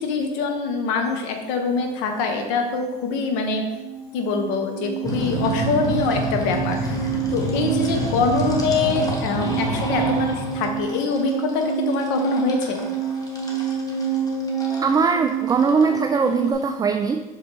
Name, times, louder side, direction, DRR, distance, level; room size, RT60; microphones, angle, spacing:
voice 1, 0.0-3.6 4.1-12.8, left 4 dB, 65° left, 4 dB, 1.1 m, -24 dB
sound 1, 1.7-1.9 2.2-16.5, right 6 dB, 50° left, 2.0 m, -28 dB
sound 2, 5.0-16.6, right 1 dB, 20° left, 1.4 m, -29 dB
voice 2, 14.8-17.2, right 5 dB, 20° right, 6 dB, 0.3 m, -20 dB
5.9 x 5.1 x 3.4 m, 1.1 s
supercardioid pair, 90°, 20 cm